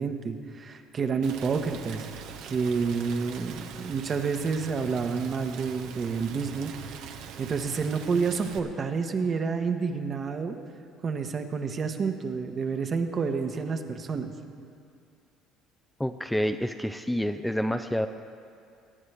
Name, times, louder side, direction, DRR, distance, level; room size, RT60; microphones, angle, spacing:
voice 1, 0.0-2.1 2.4-6.7 7.4-10.6 11.0-14.3, right 5 dB, 40° right, 6 dB, 1.1 m, -29 dB
Rain, 1.2-8.6, right 7 dB, 70° right, 0.8 m, -42 dB
voice 2, 16.0-18.1, equal, 5° left, 8 dB, 0.4 m, -28 dB
22.0 x 9.4 x 3.4 m, 2.3 s
supercardioid pair, 75°, 0 cm